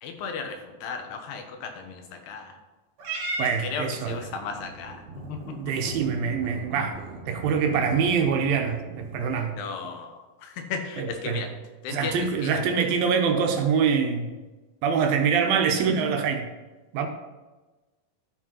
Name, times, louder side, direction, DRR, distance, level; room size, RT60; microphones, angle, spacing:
voice 1, 0.0-2.5 3.6-5.0 5.3-5.4 9.6-11.5 11.8-12.9, left 5 dB, 90° left, 5 dB, 3.2 m, -35 dB
Purr / Meow, 3.0-9.5, right 2 dB, 55° right, 3.0 m, -38 dB
voice 2, 3.4-4.3 5.5-7.0 7.3-9.6 11.0-11.5 11.9-14.3 14.8-16.5 16.9-17.1, right 6 dB, 75° right, 4 dB, 2.5 m, -25 dB
12.0 x 5.0 x 5.5 m, 1.2 s
omnidirectional pair, 4.5 m